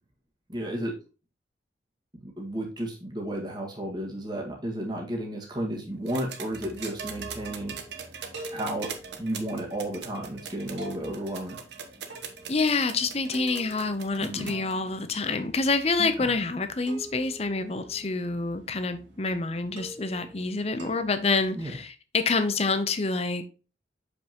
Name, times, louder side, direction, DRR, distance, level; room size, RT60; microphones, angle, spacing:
voice 1, 0.5-0.9 2.1-7.8 8.5-8.9 9.2-11.6 14.2-14.5 16.0-16.3 21.6-21.7, right 1 dB, 25° right, 1.8 m, -33 dB
sound 1, 6.1-14.7 15.9-16.0, right 7 dB, 70° right, 1.0 m, -41 dB
sound 2, 6.5-21.8, right 1 dB, 90° right, 2.6 m, -47 dB
voice 2, 12.5-23.4, left 3 dB, 35° left, 0.7 m, -27 dB
7.0 x 5.4 x 2.9 m
head